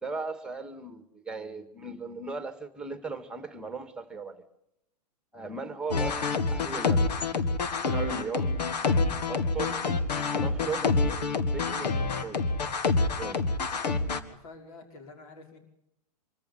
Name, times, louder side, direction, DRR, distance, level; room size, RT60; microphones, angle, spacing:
voice 1, 0.0-4.4 5.3-6.2 6.5-7.1 7.9-8.5 9.3-9.8 10.4-10.9 11.5-12.5 13.2-13.5, right 4 dB, 5° right, 10 dB, 2.0 m, -37 dB
sound 1, 5.9-14.2, left 3 dB, 80° left, 2.0 m, -27 dB
voice 2, 14.0-15.6, left 3 dB, 60° left, 4 dB, 5.6 m, -49 dB
25.0 x 14.5 x 8.3 m, 0.82 s
hypercardioid pair, 125°, 21 cm